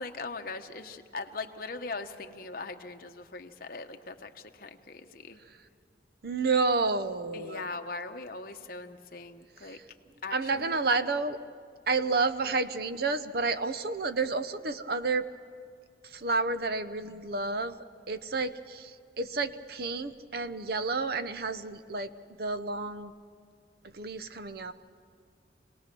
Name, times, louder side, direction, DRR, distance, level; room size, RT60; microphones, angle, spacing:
voice 1, 0.0-5.4 7.3-9.8 10.2-10.8, left 3 dB, 55° left, 5 dB, 1.1 m, -40 dB
voice 2, 6.2-7.6 10.3-11.4 11.9-15.3 16.1-17.8 18.1-22.1 22.4-23.1 23.9-24.7, right 3 dB, 60° right, 12 dB, 0.8 m, -30 dB
26.5 x 19.0 x 6.2 m, 2.2 s
head